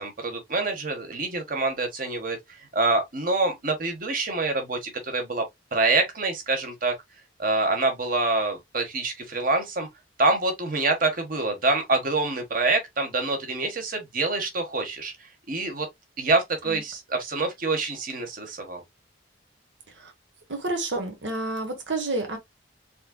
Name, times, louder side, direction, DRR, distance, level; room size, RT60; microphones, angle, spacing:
voice 1, 0.0-5.5 5.7-6.9 7.4-9.9 10.2-15.1 15.5-15.9 16.2-18.8, right 3 dB, 50° right, 1.3 m, -26 dB
voice 2, 20.5-22.4, right 2 dB, 75° right, 1.2 m, -29 dB
4.3 x 3.8 x 2.2 m
head